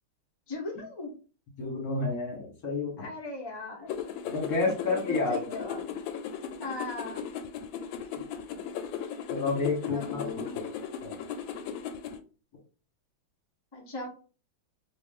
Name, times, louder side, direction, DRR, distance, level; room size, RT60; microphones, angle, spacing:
voice 1, 0.5-1.1 3.0-3.9 4.8-5.9 6.6-7.2 9.9-10.6 13.7-14.1, left 2 dB, 25° left, -2 dB, 0.5 m, -38 dB
voice 2, 1.6-3.1 4.2-5.6 9.3-10.4 11.0-11.1, left 3 dB, 55° left, 0 dB, 1.5 m, -30 dB
sound 1, 3.9-12.2, left 8 dB, 80° left, 1.3 m, -37 dB
3.2 x 2.5 x 3.5 m, 0.37 s
omnidirectional pair, 2.2 m